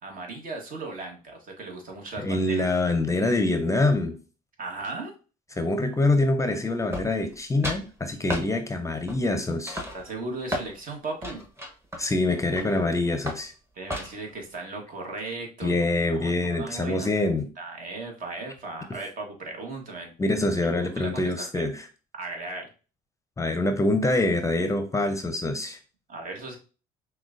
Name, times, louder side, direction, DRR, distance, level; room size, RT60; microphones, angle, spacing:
voice 1, 0.0-2.5 4.6-5.1 9.9-11.4 13.7-15.7 16.1-17.1 17.6-20.1 20.6-20.7 21.0-21.6 22.2-22.7 26.1-26.6, right 3 dB, 50° right, 2 dB, 1.3 m, -37 dB
voice 2, 2.2-4.2 5.6-9.8 12.0-13.5 15.6-17.5 20.2-21.9 23.4-25.8, left 2 dB, 15° left, 7 dB, 0.6 m, -25 dB
sound 1, 6.9-7.4 7.6-7.9 8.3-8.5 9.1-9.4 9.7-10.7 11.2-12.8 13.3-13.5 13.9-14.3, equal, 15° right, 0.9 m, -33 dB
5.9 x 2.3 x 2.5 m, 0.36 s
supercardioid pair, 75°, 18 cm